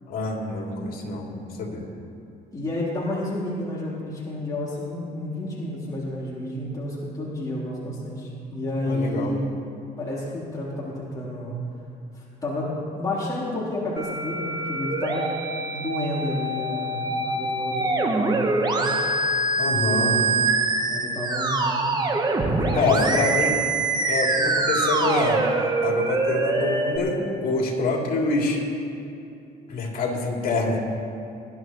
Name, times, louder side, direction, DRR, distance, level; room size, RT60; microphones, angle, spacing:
voice 1, 0.1-1.8 8.8-9.4 19.6-20.2 22.7-23.6 24.1-25.5 25.8-28.6 29.7-30.8, left 3 dB, 60° left, -2 dB, 3.2 m, -26 dB
voice 2, 2.5-9.4 10.0-11.5 12.1-15.3 15.7-19.0 19.7-20.2 20.9-21.9 22.5-23.3, left 1 dB, 20° left, -8 dB, 3.6 m, -30 dB
Musical instrument, 14.0-27.0, right 2 dB, 25° right, 1.2 m, -24 dB
20.5 x 11.5 x 3.1 m, 2.6 s
cardioid pair, 110°, 17 cm